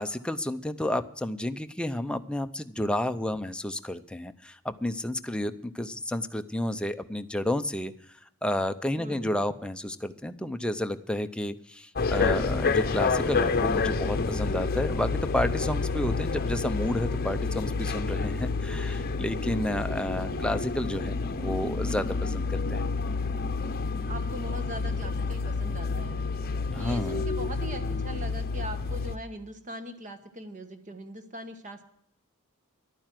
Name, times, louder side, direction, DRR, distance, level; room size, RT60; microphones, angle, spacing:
voice 1, 0.0-7.9 8.4-22.8 26.7-27.2, left 1 dB, 5° left, 8 dB, 0.6 m, -31 dB
voice 2, 9.0-9.4 24.1-26.2 26.7-31.9, right 1 dB, 35° right, 9 dB, 1.3 m, -41 dB
sound 1, 12.0-29.2, left 4 dB, 45° left, 0.8 m, -29 dB
11.5 x 9.3 x 7.5 m, 0.69 s
head